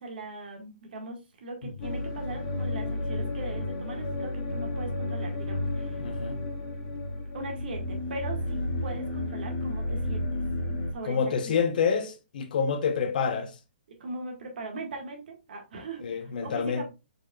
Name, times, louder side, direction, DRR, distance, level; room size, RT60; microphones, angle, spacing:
voice 1, 0.0-6.1 7.3-7.8 8.1-10.4 10.9-11.2 11.4-11.6 14.0-16.8, right 2 dB, 60° right, 1.6 m, -40 dB
sound 1, 1.8-10.9, left 1 dB, 30° left, 1.5 m, -32 dB
voice 2, 6.0-6.4 11.1-13.5 16.0-16.8, left 6 dB, 50° left, 0.8 m, -27 dB
4.9 x 4.6 x 2.3 m
hypercardioid pair, 165°, 6 cm